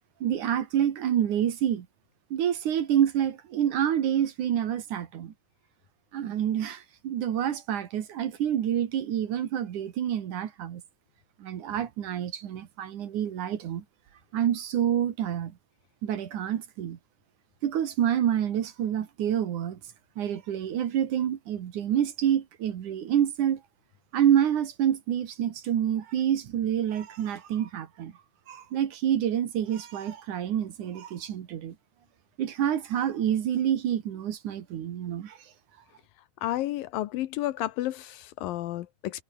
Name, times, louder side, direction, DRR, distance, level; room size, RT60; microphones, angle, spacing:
voice 1, 0.2-1.9 2.3-5.3 6.1-10.8 11.4-13.8 14.3-15.5 16.0-17.0 17.6-19.8 20.2-23.6 24.1-28.1 28.5-31.8 32.4-35.5, right 10 dB, 65° right, 3.0 m, -27 dB
voice 2, 36.4-39.2, left 15 dB, 85° left, 2.7 m, -31 dB
omnidirectional pair, 4.1 m